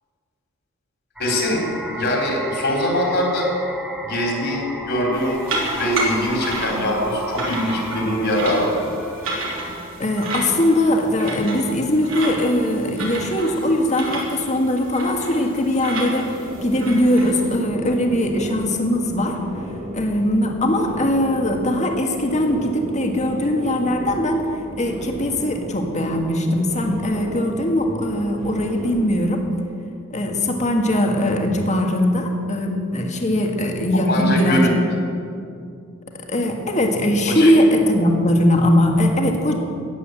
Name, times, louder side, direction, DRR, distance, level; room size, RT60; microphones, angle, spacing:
voice 1, 1.2-3.5 4.0-5.4 5.7-8.7 34.1-34.7 37.3-37.5, left 1 dB, 60° left, 0 dB, 3.7 m, -22 dB
sound 1, 1.2-9.6, equal, 5° right, 1.8 m, -34 dB
sound 2, 5.1-17.6, right 2 dB, 70° right, 3.4 m, -31 dB
voice 2, 10.0-16.3 16.6-19.4 19.9-24.4 24.8-29.4 30.1-34.6 36.3-39.6, left 1 dB, 35° left, 2 dB, 1.8 m, -20 dB
sound 3, 16.4-29.1, equal, 30° right, 2.2 m, -35 dB
15.0 x 9.7 x 7.9 m, 2.4 s
head